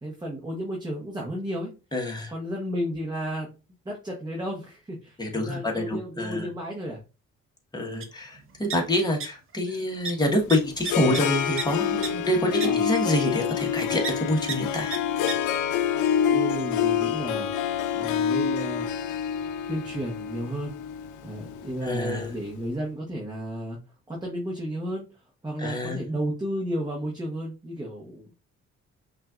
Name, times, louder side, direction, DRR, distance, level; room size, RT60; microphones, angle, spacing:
voice 1, 0.0-1.7 2.3-3.5 3.8-7.0 7.7-8.0 12.6-12.8 16.3-17.5 17.9-18.9 19.7-20.7 21.2-23.8 24.1-25.1 25.4-28.3, equal, 15° right, -1 dB, 1.0 m, -33 dB
voice 2, 1.9-2.3 5.2-6.5 7.7-15.0 21.8-22.3 25.6-26.0, left 1 dB, 15° left, 0 dB, 1.3 m, -27 dB
sound 1, 8.0-8.1 8.3-9.3 9.5-9.8 10.0-10.1 10.5-11.6 12.0-12.1 12.6-12.7 14.0-14.1 14.5-14.6 14.9-15.0 15.3-15.4, right 5 dB, 45° right, 0.8 m, -32 dB
Harp, 10.2-22.4, left 8 dB, 80° left, 0.5 m, -27 dB
5.4 x 2.6 x 2.4 m, 0.31 s
cardioid pair, 90°, 30 cm